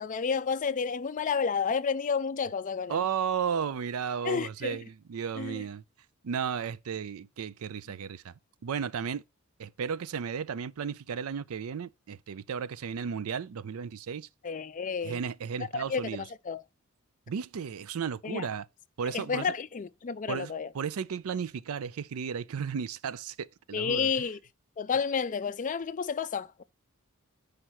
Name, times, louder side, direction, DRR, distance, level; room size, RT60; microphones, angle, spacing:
voice 1, 0.0-3.0 4.2-4.8 5.4-5.6 14.4-15.2 15.7-16.1 16.5-16.6 18.2-18.5 19.1-20.7 23.7-24.4 24.8-26.6, left 6 dB, 40° left, 0.4 m, -31 dB
voice 2, 2.9-5.8 6.2-8.3 8.6-9.2 9.6-14.3 15.0-16.3 17.3-18.7 19.0-19.5 20.3-24.1, right 7 dB, 90° right, 0.4 m, -34 dB
5.6 x 5.1 x 6.3 m
head